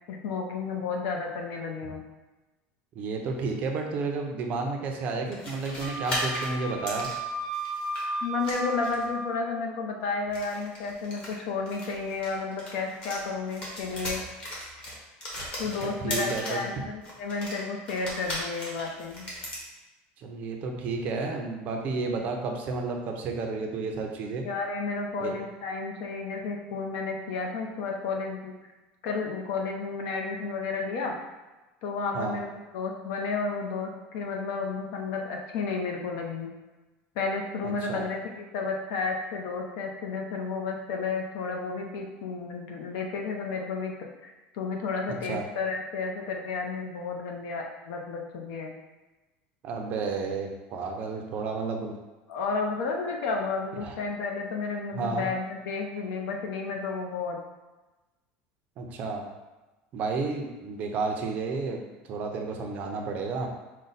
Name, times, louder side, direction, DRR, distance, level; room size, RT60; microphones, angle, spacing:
voice 1, 0.1-2.0 8.2-14.2 15.6-19.3 24.4-28.5 29.0-31.1 31.8-32.5 32.7-36.5 37.2-44.0 44.2-48.7 52.3-57.4, left 4 dB, 65° left, 2 dB, 0.7 m, -32 dB
voice 2, 2.9-7.1 15.6-16.6 20.2-24.5 25.2-25.3 32.1-32.4 37.6-38.0 45.2-45.4 49.6-52.0 53.8-53.9 54.9-55.3 58.8-59.2 59.9-63.5, right 4 dB, 35° right, 2 dB, 0.5 m, -32 dB
sound 1, 5.3-8.0 8.4-9.1 10.2-13.2 13.5-16.7 17.0-19.6, left 1 dB, 25° left, 1.0 m, -37 dB
Wind instrument woodwind instrument, 5.8-9.4, right 2 dB, 85° right, 0.6 m, -34 dB
5.1 x 2.1 x 4.0 m, 1.1 s
cardioid pair, 175°, 4 cm